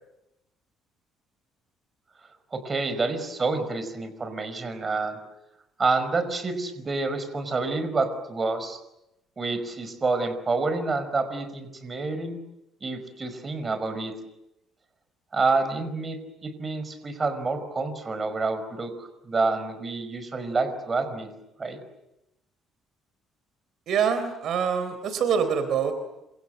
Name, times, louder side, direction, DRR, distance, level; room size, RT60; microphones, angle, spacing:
voice 1, 2.5-5.2 5.8-8.8 9.4-12.4 12.8-14.1 15.3-21.3 21.6-21.8, right 3 dB, 25° right, 10 dB, 5.1 m, -28 dB
voice 2, 23.9-25.9, right 7 dB, 60° right, 10 dB, 3.7 m, -25 dB
28.0 x 27.0 x 7.9 m, 0.89 s
cardioid pair, 125°, 0 cm